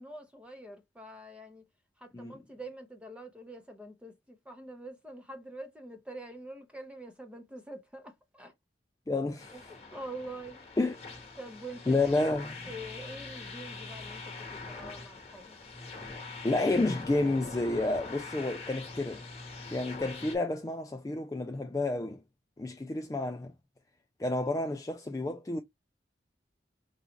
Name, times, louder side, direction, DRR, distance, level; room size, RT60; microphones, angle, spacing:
voice 1, 0.0-1.6 2.0-8.5 9.5-10.6 11.4-12.0 12.7-14.2 14.5-15.6, right 1 dB, 5° right, 0.7 m, -45 dB
voice 2, 9.1-9.5 10.8-10.9 11.9-12.6 16.4-19.2 19.7-22.2 22.6-23.5 24.2-25.6, left 2 dB, 20° left, 0.3 m, -30 dB
sound 1, 9.4-20.4, left 3 dB, 35° left, 1.0 m, -44 dB
5.0 x 2.3 x 2.9 m
head